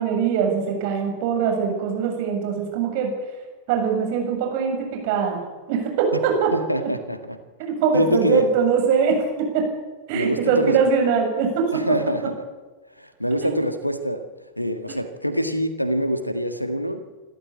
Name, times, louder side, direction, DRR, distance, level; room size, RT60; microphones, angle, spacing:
voice 1, 0.0-3.1 3.7-5.4 5.7-6.5 6.8-6.9 7.6-9.7 10.1-11.7 13.4-13.5, right 6 dB, 50° right, 2 dB, 7.3 m, -22 dB
voice 2, 6.5-7.4 7.9-8.5 10.1-10.8 11.7-12.3 13.0-14.3 14.6-17.0, equal, 90° left, 9 dB, 1.8 m, -24 dB
28.0 x 13.0 x 8.6 m, 1.3 s
figure-of-eight pair, 90°, 0 cm